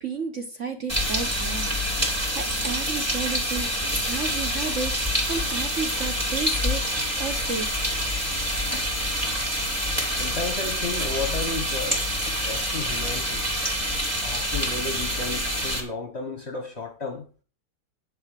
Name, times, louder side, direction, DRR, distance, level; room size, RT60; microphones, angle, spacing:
voice 1, 0.0-1.8 2.0-6.8 7.2-7.9, right 5 dB, 45° right, 1.2 m, -33 dB
sound 1, 0.9-15.8, equal, 10° right, 2.8 m, -26 dB
voice 2, 10.2-12.0 12.5-13.5 14.0-17.2, left 3 dB, 40° left, 1.1 m, -33 dB
10.0 x 4.8 x 7.6 m
omnidirectional pair, 2.2 m